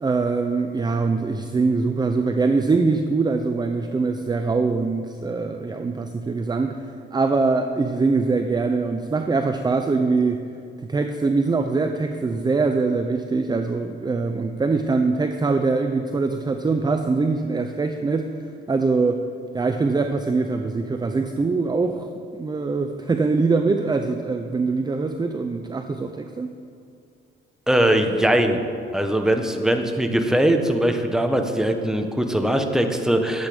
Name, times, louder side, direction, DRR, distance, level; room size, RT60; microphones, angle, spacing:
voice 1, 0.0-10.4 10.8-19.2 19.5-26.5, right 4 dB, 20° right, 6 dB, 0.6 m, -23 dB
voice 2, 27.7-28.6 28.9-33.5, right 1 dB, 5° right, 5 dB, 1.1 m, -21 dB
12.0 x 8.2 x 5.2 m, 2.4 s
cardioid pair, 90°, 20 cm